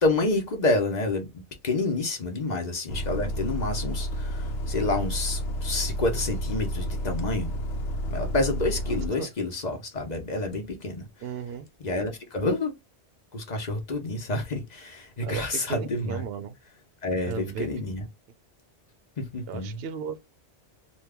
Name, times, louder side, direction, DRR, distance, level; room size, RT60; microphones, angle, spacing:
voice 1, 0.0-1.3 1.6-7.5 8.1-11.1 11.8-12.7 13.3-16.2 17.0-18.1 19.2-19.9, left 2 dB, 45° left, 0.9 m, -28 dB
Bus, 2.9-9.1, equal, 70° left, 0.9 m, -31 dB
voice 2, 11.2-11.7 15.2-16.5 17.3-17.7 19.5-20.2, right 7 dB, 65° right, 0.8 m, -35 dB
3.0 x 2.3 x 3.3 m
omnidirectional pair, 1.1 m